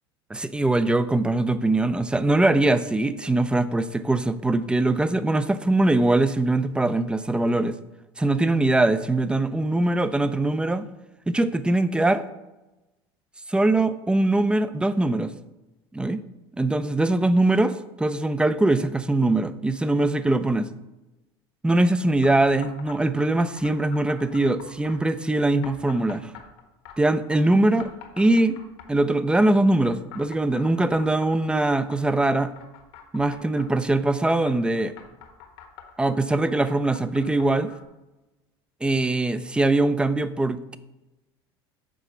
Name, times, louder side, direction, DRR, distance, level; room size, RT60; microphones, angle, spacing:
voice 1, 0.3-7.8 8.2-10.9 11.3-12.2 13.5-15.3 15.9-16.2 16.6-20.7 21.6-26.3 27.0-27.9 28.2-28.6 28.9-32.5 33.1-34.9 36.0-37.7 38.8-40.8, right 2 dB, 5° right, 13 dB, 0.4 m, -22 dB
sound 1, 22.2-23.0 23.3-25.0 25.6-27.4 27.8-29.1 29.9-33.7 34.2-37.8, left 9 dB, 70° left, 1.2 m, -45 dB
6.1 x 4.8 x 5.6 m, 1.0 s
hypercardioid pair, 75°, 14 cm